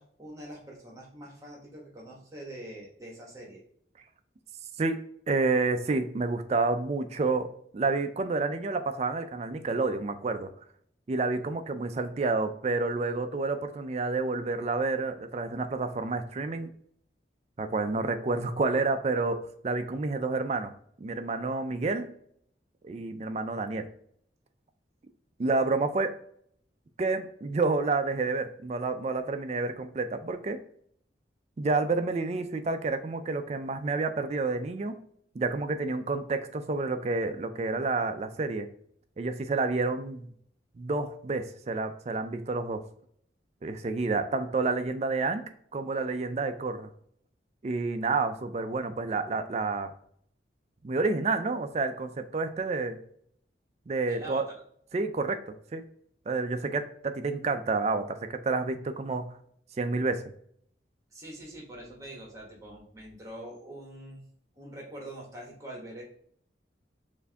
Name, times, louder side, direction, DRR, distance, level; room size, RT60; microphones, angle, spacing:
voice 1, 0.0-3.6 54.1-54.4 61.1-64.2 64.5-66.0, right 1 dB, 15° right, -2 dB, 1.2 m, -44 dB
voice 2, 4.8-7.5 7.7-10.5 11.1-16.7 17.6-20.7 21.0-22.1 22.8-23.9 25.4-26.1 27.0-30.6 31.6-35.0 35.3-38.7 39.2-40.3 40.8-42.8 43.6-45.4 45.7-46.9 47.6-49.9 50.8-53.0 53.9-54.5 54.9-55.8 56.3-59.3 59.8-60.2, right 3 dB, 35° right, 8 dB, 0.3 m, -29 dB
4.5 x 2.6 x 3.4 m, 0.65 s
head